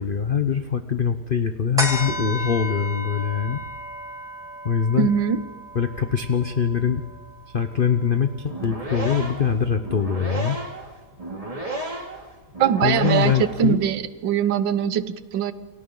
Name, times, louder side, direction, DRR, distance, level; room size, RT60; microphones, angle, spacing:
voice 1, 0.0-3.6 4.6-5.1 5.7-7.0 7.5-10.6 12.8-13.8, left 7 dB, 60° left, 8 dB, 0.5 m, -23 dB
sound 1, 1.8-8.5 9.0-9.1, equal, ahead, 5.4 m, -33 dB
voice 2, 5.0-5.4 12.6-13.3 13.6-15.5, right 8 dB, 70° right, 13 dB, 1.6 m, -22 dB
sound 2, 8.4-13.7, right 1 dB, 20° right, 2.4 m, -32 dB
29.5 x 23.5 x 3.9 m, 1.3 s
omnidirectional pair, 2.1 m